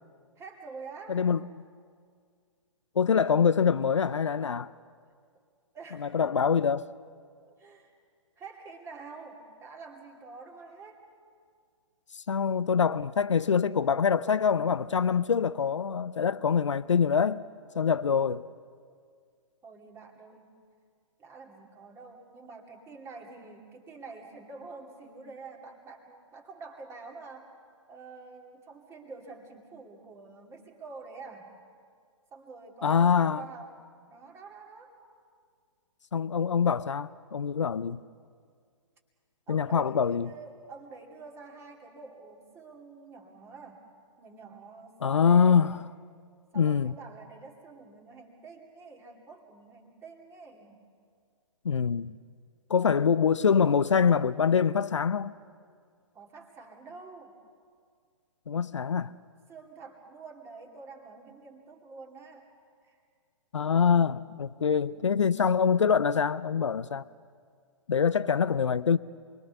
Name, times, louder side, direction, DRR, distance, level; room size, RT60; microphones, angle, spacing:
voice 1, 0.4-1.3 5.7-6.4 7.4-7.9 8.4-11.0 19.6-20.5 21.2-27.5 27.9-31.5 32.3-33.8 34.1-34.9 39.5-43.9 44.2-45.7 46.5-50.9 56.1-57.3 59.5-62.5 62.8-63.0, right 4 dB, 15° right, 2.7 m, -47 dB
voice 2, 1.1-1.4 3.0-4.7 6.0-6.8 12.1-17.4 17.7-18.4 32.8-33.4 36.1-38.0 39.5-40.3 45.0-45.7 46.6-46.9 51.6-52.2 52.7-55.3 58.5-59.1 63.5-67.0 67.9-69.0, left 6 dB, 65° left, 0.6 m, -24 dB
28.0 x 21.5 x 6.9 m
figure-of-eight pair, 125°, 17 cm